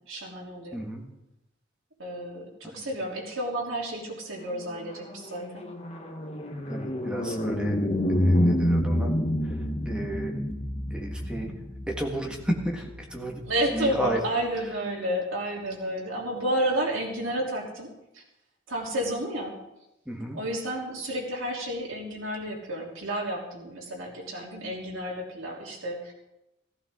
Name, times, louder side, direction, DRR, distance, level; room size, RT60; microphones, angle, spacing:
voice 1, 0.1-0.8 2.0-5.6 13.5-18.2 18.7-19.5 20.3-26.1, right 1 dB, 85° right, -1 dB, 3.3 m, -31 dB
voice 2, 0.7-1.0 2.6-2.8 6.7-7.8 8.1-9.1 9.4-10.4 10.9-11.5 12.0-13.4 13.7-14.2 20.0-20.4, right 1 dB, 5° right, 0 dB, 1.7 m, -33 dB
sound 1, 4.5-14.1, equal, 30° left, 1.1 m, -28 dB
15.5 x 14.5 x 3.8 m, 0.90 s
head